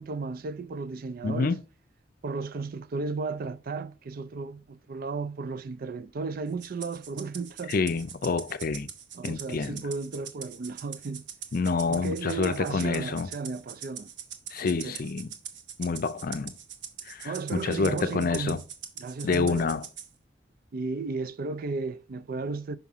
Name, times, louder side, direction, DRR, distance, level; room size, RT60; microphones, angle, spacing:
voice 1, 0.0-1.6 2.2-7.7 9.1-11.3 11.9-14.1 14.6-15.0 17.2-18.6 19.0-19.7 20.7-22.8, right 4 dB, 50° right, 0.4 m, -34 dB
voice 2, 1.2-1.6 7.7-8.9 9.2-9.8 11.5-13.3 14.5-15.3 15.8-16.5 17.1-18.6 19.2-19.9, left 4 dB, 55° left, 0.5 m, -28 dB
Rattle (instrument), 6.6-20.1, right 8 dB, 70° right, 0.9 m, -43 dB
5.7 x 5.7 x 3.6 m
head